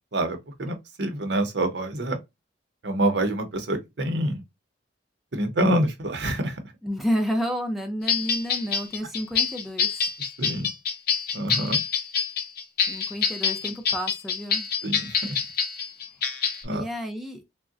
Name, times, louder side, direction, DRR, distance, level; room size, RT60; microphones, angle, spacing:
voice 1, 0.1-2.2 2.8-4.4 5.3-6.6 10.4-10.7 11.3-11.8 14.8-15.4 16.6-16.9, right 1 dB, 70° right, 0.7 m, -26 dB
voice 2, 6.8-9.9 12.9-14.7 16.7-17.4, equal, ahead, 0.5 m, -30 dB
sound 1, 8.1-16.6, left 6 dB, 55° left, 0.7 m, -26 dB
3.6 x 2.1 x 2.4 m
head